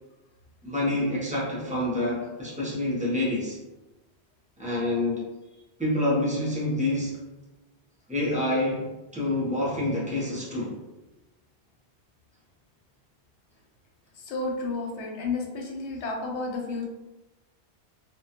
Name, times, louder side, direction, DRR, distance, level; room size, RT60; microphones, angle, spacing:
voice 1, 0.6-3.6 4.6-5.2 5.8-7.2 8.1-10.8, left 1 dB, 10° right, -6 dB, 0.4 m, -27 dB
voice 2, 14.2-16.9, left 3 dB, 80° left, 0 dB, 0.9 m, -31 dB
2.3 x 2.1 x 2.7 m, 1.1 s
omnidirectional pair, 1.1 m